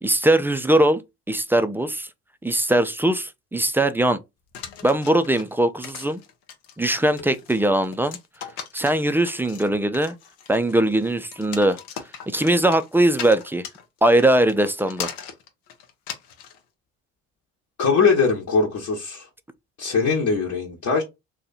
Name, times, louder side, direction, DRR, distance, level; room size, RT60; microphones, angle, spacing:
voice 1, 0.0-1.0 1.3-2.1 2.4-4.2 4.8-6.2 6.8-8.2 8.7-10.1 10.5-11.8 12.3-13.7 14.0-15.1, right 1 dB, 5° right, 0.4 m, -20 dB
sound 1, 4.5-16.6, left 8 dB, 70° left, 0.8 m, -38 dB
voice 2, 17.8-19.2 19.8-21.0, left 4 dB, 50° left, 1.1 m, -21 dB
2.7 x 2.3 x 4.0 m
hypercardioid pair, 55°, 37 cm